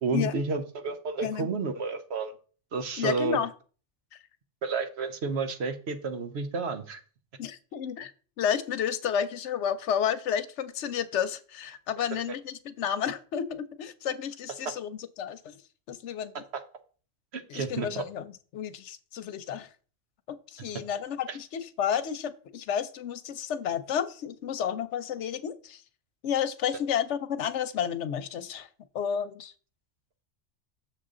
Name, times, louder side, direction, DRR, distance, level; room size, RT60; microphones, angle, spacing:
voice 1, 0.0-2.3 2.7-3.4 4.6-7.0 14.6-14.7 17.3-18.0 21.3-21.4, right 4 dB, 65° right, 7 dB, 1.2 m, -31 dB
voice 2, 3.0-3.5 7.4-8.1 8.4-15.6 15.9-16.4 17.5-19.7 20.3-25.8 26.2-28.7 28.9-29.5, left 8 dB, 80° left, 12 dB, 1.0 m, -31 dB
6.8 x 6.7 x 3.8 m, 0.39 s
omnidirectional pair, 1.2 m